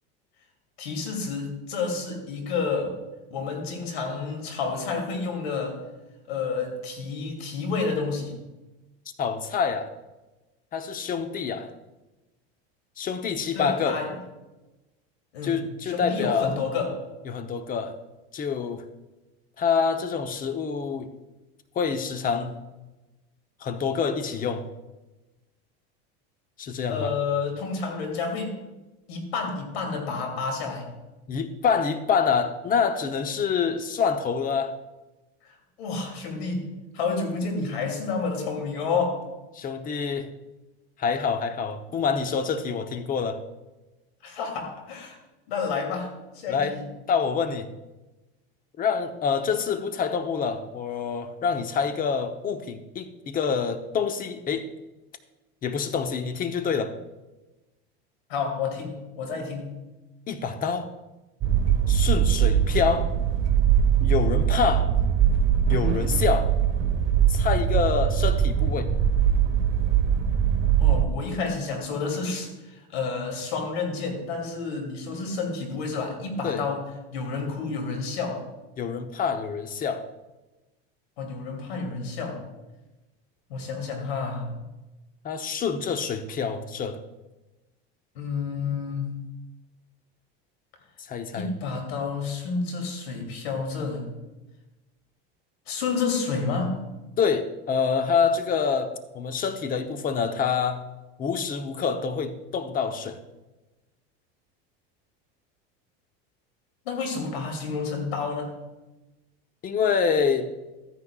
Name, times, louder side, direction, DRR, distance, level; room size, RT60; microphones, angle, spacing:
voice 1, 0.8-2.9 3.3-5.8 6.3-8.3 13.5-14.1 15.3-17.0 26.9-28.5 29.1-30.9 35.4-35.5 35.8-39.2 44.2-45.2 45.5-46.8 58.3-59.7 70.8-78.4 81.2-82.4 83.5-84.6 88.1-89.1 91.3-94.1 95.7-96.8 106.8-108.6, left 4 dB, 90° left, 2 dB, 2.6 m, -30 dB
voice 2, 9.2-9.9 10.7-11.7 13.0-14.0 15.4-16.6 17.3-17.9 18.3-18.8 19.6-21.1 21.8-22.6 23.6-24.6 26.6-27.1 31.3-34.7 39.5-40.3 41.0-43.4 46.5-46.8 47.1-47.7 48.8-54.7 55.6-56.9 60.3-60.9 61.9-63.1 64.0-64.9 65.7-66.5 67.3-68.9 76.4-76.6 78.8-80.0 85.2-87.0 91.1-91.5 97.2-100.8 101.2-103.2 109.6-110.5, left 6 dB, 30° left, 9 dB, 0.8 m, -26 dB
sound 1, 61.4-71.0, right 9 dB, 40° right, 1.0 m, -22 dB
13.5 x 9.7 x 2.4 m, 1.1 s
supercardioid pair, 125°, 30 cm